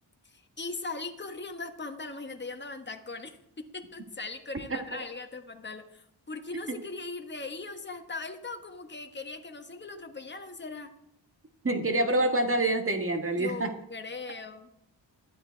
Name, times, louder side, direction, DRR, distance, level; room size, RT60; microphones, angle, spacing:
voice 1, 0.3-10.9 13.4-14.7, left 3 dB, 25° left, 6 dB, 1.4 m, -39 dB
voice 2, 11.6-13.7, right 2 dB, 25° right, 6 dB, 1.8 m, -26 dB
12.5 x 9.4 x 4.6 m, 0.74 s
cardioid pair, 75°, 47 cm